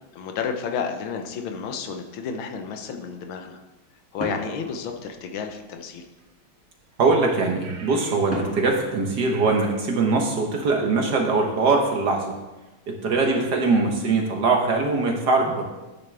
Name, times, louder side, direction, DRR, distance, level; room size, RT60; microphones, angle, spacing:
voice 1, 0.1-3.6 4.1-6.0 13.2-13.4, left 6 dB, 75° left, 5 dB, 1.6 m, -31 dB
sound 1, 4.2-5.7 8.3-10.1, equal, 5° left, 2.0 m, -36 dB
sound 2, 6.2-6.3 7.6-8.3 8.5-8.8 9.3-9.8, right 4 dB, 80° right, 2.4 m, -45 dB
voice 2, 7.0-12.3 12.9-15.6, right 3 dB, 60° right, 2 dB, 1.5 m, -22 dB
10.0 x 9.5 x 3.4 m, 1.1 s
omnidirectional pair, 2.2 m